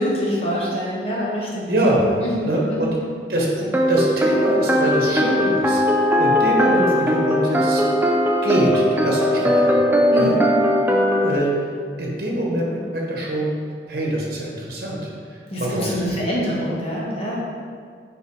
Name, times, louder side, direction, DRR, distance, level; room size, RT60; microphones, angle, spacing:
voice 1, 0.0-3.0 10.1-10.4 15.5-17.4, equal, 35° left, -5 dB, 1.3 m, -25 dB
voice 2, 1.7-2.0 2.4-2.9 3.3-7.8 8.4-9.7 10.1-10.3 11.2-11.7 12.0-13.5 13.9-15.9, right 1 dB, 55° right, -3 dB, 1.2 m, -24 dB
sound 1, 3.7-11.4, equal, 10° right, 0.4 m, -19 dB
5.6 x 4.4 x 4.7 m, 2.1 s
head